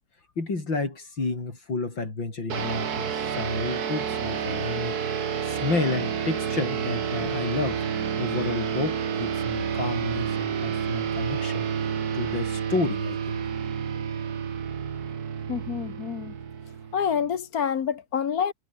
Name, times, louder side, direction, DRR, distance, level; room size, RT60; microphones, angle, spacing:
voice 1, 0.4-7.8 8.1-11.7 12.1-13.4, left 3 dB, 90° left, 5.9 m, -31 dB
sound 1, 2.5-17.3, right 7 dB, 55° right, 2.0 m, -29 dB
voice 2, 15.5-16.3 16.9-18.5, left 7 dB, 55° left, 1.6 m, -27 dB
omnidirectional pair, 2.0 m